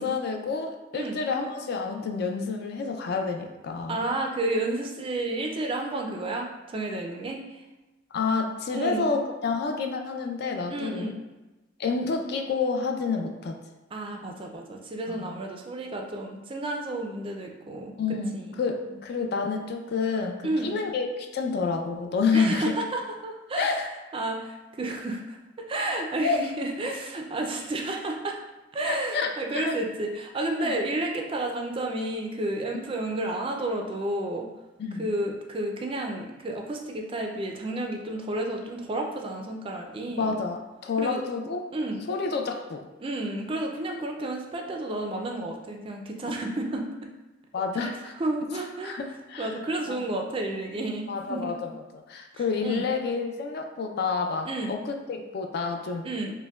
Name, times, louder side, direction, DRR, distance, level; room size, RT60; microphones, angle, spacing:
voice 1, 0.0-4.0 8.1-11.1 11.8-13.6 15.1-15.4 18.0-22.7 23.6-23.9 25.9-26.4 28.9-29.8 30.6-30.7 34.8-35.1 40.2-41.6 42.1-42.8 47.5-48.1 48.8-49.5 49.9-50.1 51.1-56.1, left 4 dB, 55° left, 3 dB, 0.4 m, -29 dB
voice 2, 3.9-7.6 8.7-9.1 10.7-11.1 13.9-17.9 18.3-18.6 20.4-20.8 22.3-23.7 24.1-25.4 25.7-28.4 28.7-34.5 35.0-40.4 41.0-41.2 41.7-42.0 43.0-47.1 47.8-49.0 49.4-51.6 52.3-52.8 54.5-54.7 56.0-56.3, right 2 dB, 30° right, 1 dB, 0.3 m, -31 dB
5.2 x 2.1 x 2.3 m, 1.1 s
head